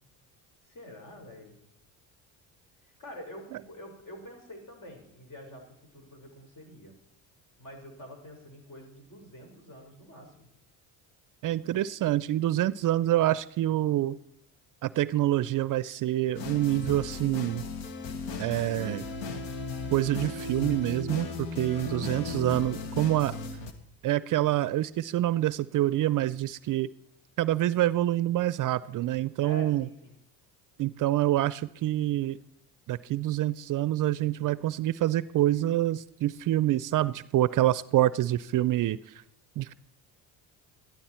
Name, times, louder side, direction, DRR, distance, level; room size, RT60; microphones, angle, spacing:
voice 1, 0.6-1.6 2.8-6.9 7.6-10.5 21.7-22.1 29.4-30.1, equal, 45° left, 3 dB, 4.6 m, -46 dB
voice 2, 11.4-14.2 14.8-17.6 18.4-19.0 19.9-23.4 24.0-26.9 27.4-29.9 30.8-32.4 32.9-39.1 39.6-39.7, right 14 dB, 50° right, 18 dB, 0.5 m, -26 dB
sound 1, 16.3-23.7, left 4 dB, 85° left, 1.5 m, -36 dB
13.0 x 11.0 x 4.3 m, 0.79 s
supercardioid pair, 85°, 43 cm